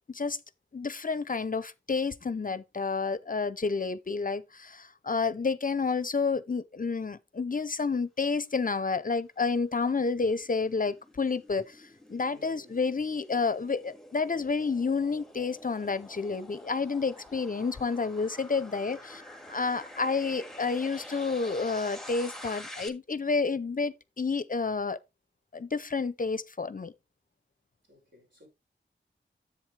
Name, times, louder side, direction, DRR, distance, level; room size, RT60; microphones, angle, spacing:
voice 1, 0.1-0.4 0.7-19.2 19.5-25.0 25.5-26.9, left 4 dB, 40° left, 0.6 m, -30 dB
sound 1, 9.7-22.9, left 1 dB, ahead, 1.8 m, -48 dB
voice 2, 12.3-12.8 18.6-19.1 27.8-28.5, left 2 dB, 65° right, 6.0 m, -58 dB
10.5 x 7.9 x 3.2 m
wide cardioid pair, 80°, 20 cm